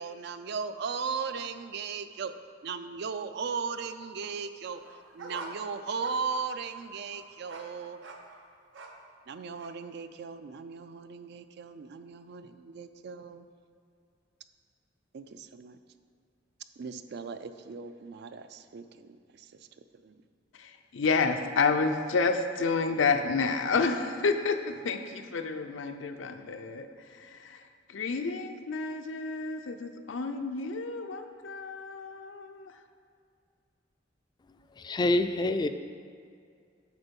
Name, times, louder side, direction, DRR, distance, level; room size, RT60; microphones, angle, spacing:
voice 1, 0.0-2.3 2.6-4.8 5.1-8.0 9.3-13.4 15.1-15.8 16.8-19.7 20.0-20.2, right 5 dB, 60° right, 0.4 m, -37 dB
sound 1, 4.7-9.1 9.6-9.7, right 3 dB, 85° right, 0.7 m, -47 dB
voice 2, 20.5-32.8, left 4 dB, 85° left, 0.5 m, -30 dB
voice 3, 34.8-35.7, left 2 dB, 25° left, 0.3 m, -26 dB
8.1 x 4.4 x 5.3 m
head